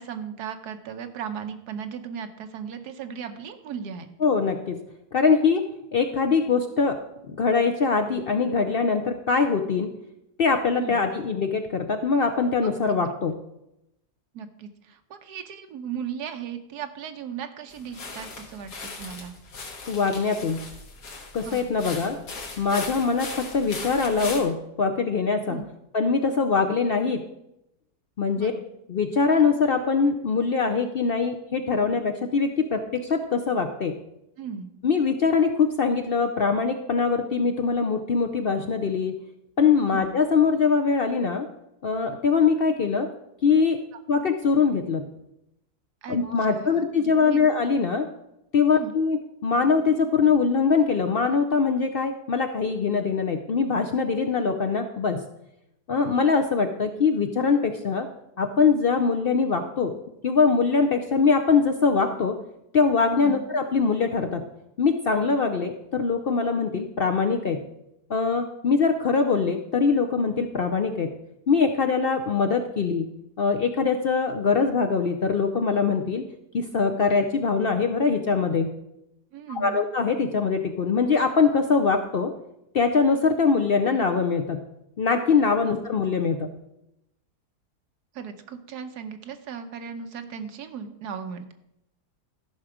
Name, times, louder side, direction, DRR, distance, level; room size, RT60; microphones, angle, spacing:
voice 1, 0.0-4.1 10.7-11.1 12.6-12.7 14.3-19.3 21.4-21.7 25.5-25.7 28.4-28.6 34.4-34.7 39.8-40.1 46.0-46.2 46.5-46.8 47.1-47.4 48.7-48.9 63.2-63.4 79.3-79.8 88.1-91.5, right 7 dB, 80° right, 8 dB, 1.4 m, -37 dB
voice 2, 4.2-4.8 5.1-5.6 5.9-7.0 7.3-9.9 10.4-13.4 19.9-20.6 21.3-22.2 22.6-25.6 25.9-27.2 28.2-28.5 28.9-34.0 34.8-39.1 39.6-41.5 41.8-43.1 43.4-43.8 44.1-45.0 46.1-48.1 48.5-55.2 55.9-58.1 58.4-59.9 60.2-62.4 62.7-64.4 64.8-67.6 68.1-71.1 71.5-73.1 73.4-76.2 76.5-78.7 79.6-82.3 82.7-84.6 85.0-86.5, left 5 dB, 65° left, 5 dB, 0.5 m, -23 dB
sound 1, 17.7-24.4, left 3 dB, 90° left, 2.2 m, -38 dB
13.5 x 5.9 x 4.9 m, 0.84 s
omnidirectional pair, 1.7 m